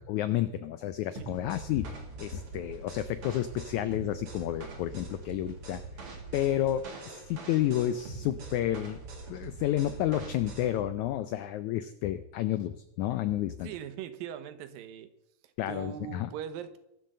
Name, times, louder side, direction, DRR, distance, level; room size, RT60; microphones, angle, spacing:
voice 1, 0.1-5.8 6.3-9.0 9.3-13.7 15.6-16.3, left 12 dB, 85° left, 12 dB, 1.7 m, -31 dB
sound 1, 1.2-10.8, right 4 dB, 40° right, 3.3 m, -43 dB
voice 2, 13.6-15.1 15.7-16.8, right 9 dB, 80° right, 11 dB, 2.7 m, -40 dB
22.0 x 7.5 x 6.7 m, 0.83 s
omnidirectional pair, 4.1 m